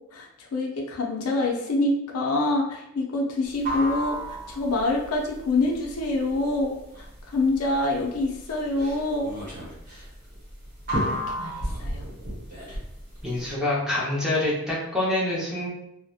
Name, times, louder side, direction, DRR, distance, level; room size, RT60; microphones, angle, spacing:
voice 1, 0.1-9.3 11.0-12.1, left 2 dB, 85° left, 0 dB, 0.5 m, -26 dB
sound 1, 3.5-13.5, equal, 40° right, 0.8 m, -32 dB
voice 2, 13.2-15.7, left 1 dB, 5° right, -7 dB, 0.6 m, -26 dB
2.7 x 2.0 x 2.3 m, 0.78 s
head